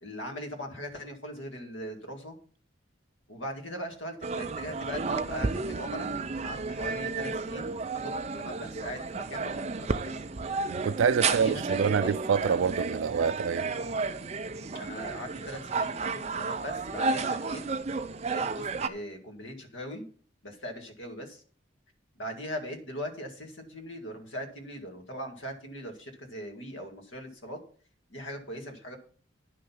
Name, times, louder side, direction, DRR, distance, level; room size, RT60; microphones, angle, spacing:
voice 1, 0.0-2.4 3.3-6.2 6.4-10.2 11.2-12.1 14.7-17.6 18.3-20.1 20.4-21.4 22.2-27.6 28.1-29.0, equal, 90° left, 2.2 m, -40 dB
sound 1, 4.2-18.9, right 4 dB, 35° right, 0.5 m, -32 dB
voice 2, 10.7-13.7, right 6 dB, 85° right, 0.4 m, -26 dB
sound 2, 11.6-17.2, left 1 dB, 60° left, 1.4 m, -56 dB
10.0 x 6.4 x 5.8 m
head